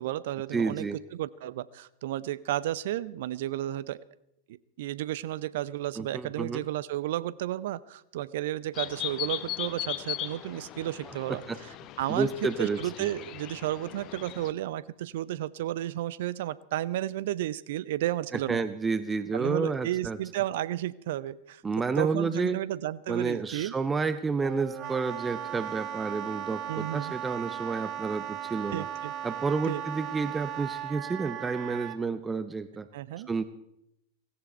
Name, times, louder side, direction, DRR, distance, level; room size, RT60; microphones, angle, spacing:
voice 1, 0.0-4.0 4.8-11.4 12.0-18.6 19.3-21.6 22.0-23.7 26.7-27.1 28.7-29.1 29.7-29.8 32.9-33.3, right 14 dB, 55° right, 19 dB, 0.6 m, -32 dB
voice 2, 0.5-1.0 6.0-6.6 11.3-11.6 12.1-13.1 18.5-20.2 21.6-22.6 23.1-28.9 29.2-32.9 33.3-33.4, right 4 dB, 15° right, 12 dB, 0.7 m, -30 dB
sound 1, 8.7-14.5, left 13 dB, 35° left, 0.9 m, -38 dB
Wind instrument woodwind instrument, 24.4-32.0, right 10 dB, 35° right, 1.0 m, -37 dB
17.0 x 17.0 x 4.4 m, 0.81 s
figure-of-eight pair, 90°, 0 cm